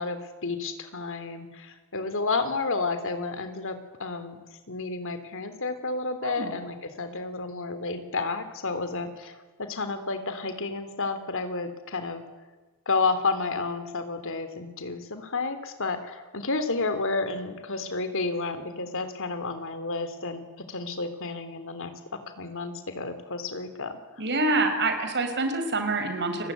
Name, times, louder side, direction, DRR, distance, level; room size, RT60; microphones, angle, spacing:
voice 1, 0.0-4.4 4.7-12.2 12.8-24.0, left 3 dB, 65° left, 9 dB, 3.3 m, -31 dB
voice 2, 24.2-26.5, right 2 dB, 55° right, 7 dB, 5.1 m, -26 dB
29.5 x 21.0 x 9.5 m, 1.3 s
head